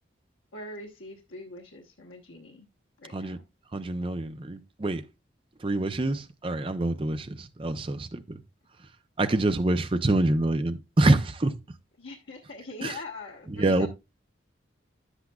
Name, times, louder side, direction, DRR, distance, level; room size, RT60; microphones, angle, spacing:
voice 1, 0.5-2.7 3.0-3.3 12.0-13.9, left 2 dB, 85° left, 1.1 m, -42 dB
voice 2, 3.7-5.0 5.6-8.4 9.2-11.5 12.8-12.9 13.6-13.9, right 2 dB, 25° right, 0.5 m, -26 dB
10.0 x 8.1 x 2.3 m
head